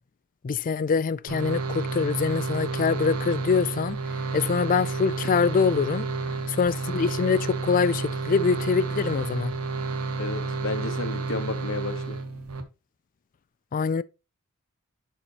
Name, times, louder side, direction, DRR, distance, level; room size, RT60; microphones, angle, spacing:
voice 1, 0.4-4.0 4.3-6.1 6.5-9.5 13.7-14.0, left 5 dB, 40° left, 0.4 m, -24 dB
sound 1, 1.3-12.6, right 3 dB, 85° right, 1.3 m, -30 dB
voice 2, 10.2-12.2, left 3 dB, 65° left, 1.1 m, -32 dB
11.0 x 4.4 x 3.0 m
head